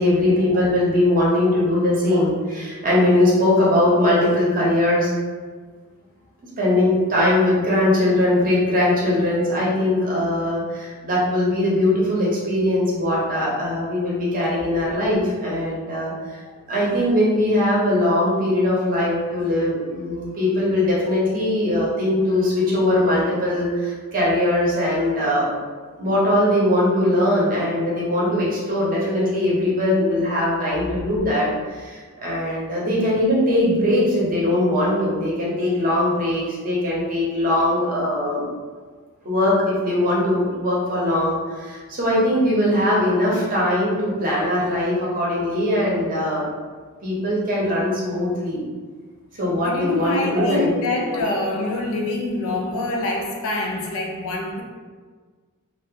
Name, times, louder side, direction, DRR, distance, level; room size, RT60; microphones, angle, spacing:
voice 1, 0.0-5.1 6.6-16.1 16.7-25.5 26.0-38.5 39.2-46.4 47.0-48.6 49.4-51.5, left 1 dB, 40° right, -5 dB, 0.7 m, -21 dB
voice 2, 49.6-54.6, left 2 dB, 65° left, 1 dB, 0.4 m, -26 dB
2.4 x 2.1 x 2.7 m, 1.5 s
head